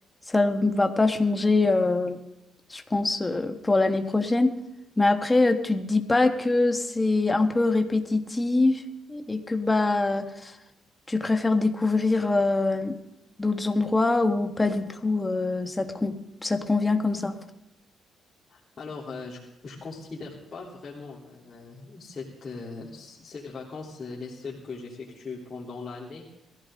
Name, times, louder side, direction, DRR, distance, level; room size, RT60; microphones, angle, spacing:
voice 1, 0.3-2.2 2.7-4.5 5.0-8.8 9.1-10.5 11.1-13.0 13.4-17.4, left 3 dB, 20° left, 6 dB, 1.6 m, -24 dB
voice 2, 18.5-26.2, left 4 dB, 40° left, -6 dB, 3.5 m, -40 dB
21.5 x 15.5 x 3.8 m, 0.90 s
cardioid pair, 90°, 0 cm